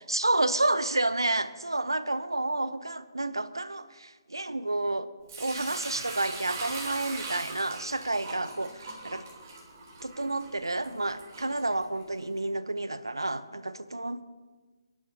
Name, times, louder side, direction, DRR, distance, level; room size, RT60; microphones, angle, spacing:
voice 1, 0.0-5.1 5.4-9.2 10.0-14.2, right 2 dB, 85° right, 14 dB, 0.7 m, -30 dB
Sink (filling or washing) / Liquid, 5.3-12.2, right 3 dB, 35° right, 3.8 m, -41 dB
29.0 x 11.0 x 2.8 m, 1.3 s
figure-of-eight pair, 140°, 2 cm